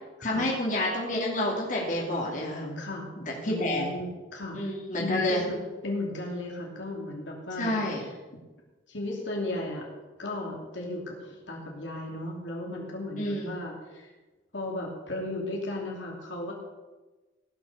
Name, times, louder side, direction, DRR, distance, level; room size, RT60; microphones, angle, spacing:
voice 1, 0.2-2.8 3.2-3.9 4.6-5.4 7.6-8.0 13.2-13.6, left 1 dB, 45° left, -3 dB, 2.7 m, -29 dB
voice 2, 2.8-3.1 3.4-4.6 5.0-8.1 8.9-9.9 10.2-14.1 14.5-16.5, left 1 dB, 80° left, -1 dB, 2.9 m, -35 dB
17.0 x 6.2 x 6.7 m, 1.2 s
head